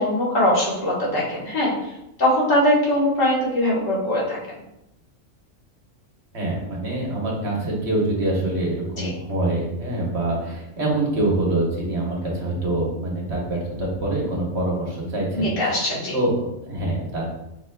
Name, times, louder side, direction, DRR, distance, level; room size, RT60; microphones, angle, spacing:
voice 1, 0.0-1.9 2.2-4.6 9.0-9.1 10.3-10.4 15.3-16.2, left 1 dB, 80° left, -4 dB, 1.7 m, -21 dB
voice 2, 6.3-15.5 16.1-17.2, right 2 dB, 60° right, -3 dB, 1.5 m, -25 dB
5.9 x 4.0 x 2.3 m, 0.87 s
omnidirectional pair, 1.3 m